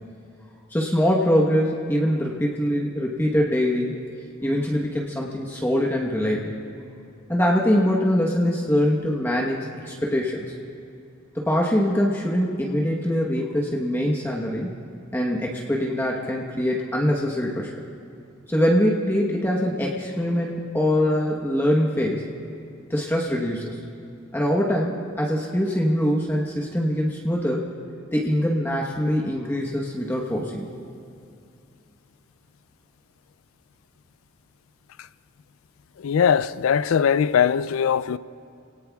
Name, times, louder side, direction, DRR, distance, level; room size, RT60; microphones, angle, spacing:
voice 1, 0.7-4.0 4.4-6.4 7.3-10.5 11.3-14.7 15.1-17.7 18.5-22.2 22.9-23.8 24.3-27.7 28.1-30.7, equal, 10° left, 1.1 m, -23 dB
voice 2, 36.0-38.2, left 7 dB, 75° left, 0.4 m, -20 dB
26.0 x 18.0 x 2.3 m
head